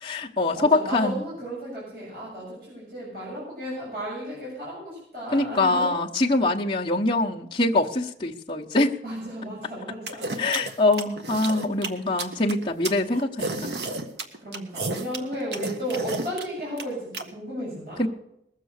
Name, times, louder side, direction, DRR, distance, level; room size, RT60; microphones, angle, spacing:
voice 1, 0.0-1.2 5.3-9.0 10.4-13.8 18.0-18.1, left 2 dB, 25° left, -2 dB, 1.0 m, -24 dB
voice 2, 0.5-6.0 9.0-10.3 14.4-18.0, equal, 55° right, -7 dB, 7.2 m, -34 dB
sound 1, 10.1-17.2, right 2 dB, 75° right, 1.6 m, -31 dB
20.5 x 7.6 x 6.5 m, 0.78 s
head